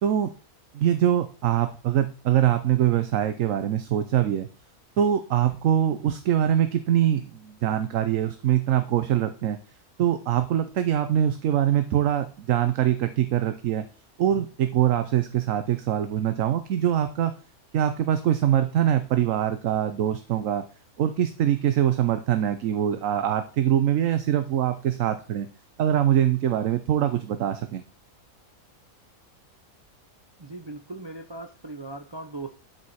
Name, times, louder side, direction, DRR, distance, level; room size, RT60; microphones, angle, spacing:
voice 1, 0.7-4.5 5.0-9.6 10.0-13.8 14.2-17.3 17.7-20.6 21.0-25.5 25.8-27.8, right 10 dB, 65° right, 10 dB, 1.0 m, -23 dB
voice 2, 30.4-32.5, right 2 dB, 40° right, 6 dB, 0.3 m, -38 dB
12.0 x 4.9 x 4.1 m, 0.36 s
omnidirectional pair, 1.6 m